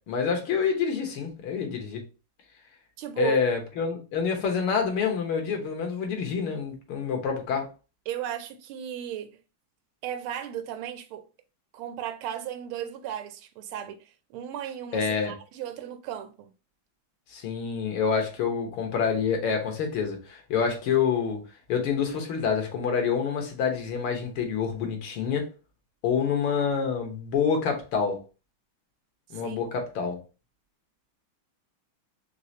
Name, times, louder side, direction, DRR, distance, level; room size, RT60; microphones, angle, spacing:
voice 1, 0.1-2.0 3.2-7.7 14.9-15.3 17.3-21.4 21.7-25.5 26.0-28.2 29.3-30.2, left 6 dB, 85° left, 1.9 m, -27 dB
voice 2, 3.0-3.4 8.1-9.4 10.0-11.2 11.7-16.5 29.3-29.6, right 10 dB, 90° right, 1.5 m, -35 dB
4.8 x 3.2 x 2.7 m
omnidirectional pair, 2.2 m